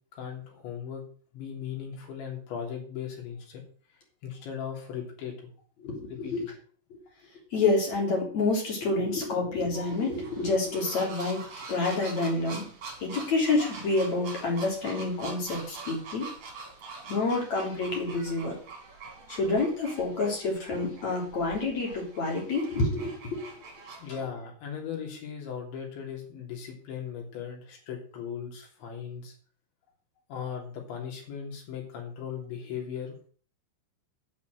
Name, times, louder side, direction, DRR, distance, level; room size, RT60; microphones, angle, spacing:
voice 1, 0.1-1.0 1.3-3.6 4.2-5.3 6.1-6.5 24.0-29.3 30.3-33.3, left 8 dB, 70° left, 1 dB, 5.5 m, -38 dB
voice 2, 5.8-6.4 6.9-7.0 7.5-11.4 11.7-12.6 13.0-16.3 17.1-18.5 19.3-23.4, left 3 dB, 40° left, -1 dB, 4.4 m, -28 dB
sound 1, 9.7-24.1, right 4 dB, 35° right, 4.0 m, -44 dB
9.7 x 7.5 x 7.8 m, 0.43 s
omnidirectional pair, 5.5 m